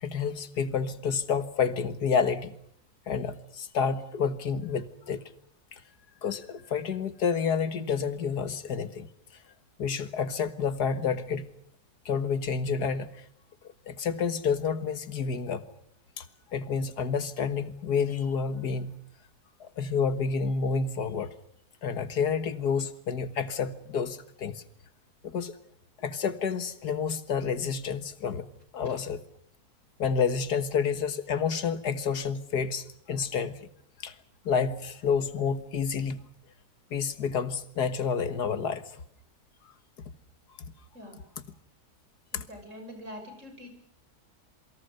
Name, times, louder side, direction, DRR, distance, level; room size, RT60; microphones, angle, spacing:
voice 1, 0.0-2.5 3.1-5.2 5.7-5.8 6.2-9.1 9.8-11.5 12.1-13.3 13.9-15.6 16.2-16.3 16.5-19.0 19.6-21.3 21.8-24.6 25.2-25.6 26.0-28.5 28.7-29.2 30.0-33.6 34.0-34.2 34.5-36.3 36.9-39.0 42.3-42.4, left 6 dB, 80° left, 11 dB, 2.0 m, -29 dB
voice 2, 42.3-43.7, equal, 50° right, 5 dB, 6.7 m, -44 dB
27.5 x 24.0 x 6.7 m, 0.65 s
omnidirectional pair, 1.7 m